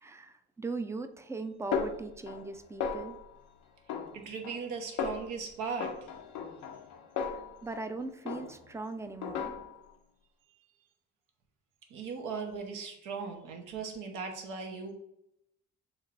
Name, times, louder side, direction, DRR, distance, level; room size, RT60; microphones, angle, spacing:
voice 1, 0.0-3.2 7.6-9.6, right 3 dB, 10° right, 8 dB, 0.4 m, -39 dB
Snare drum, 1.7-2.5 2.8-3.4 3.9-4.7 5.0-5.4 5.8-7.9 8.3-8.8 9.2-9.9, left 6 dB, 80° left, 0.6 m, -36 dB
voice 2, 4.1-6.1 11.9-14.9, right 5 dB, 85° right, 2 dB, 1.0 m, -38 dB
6.3 x 3.2 x 2.5 m, 0.78 s
cardioid pair, 90°, 30 cm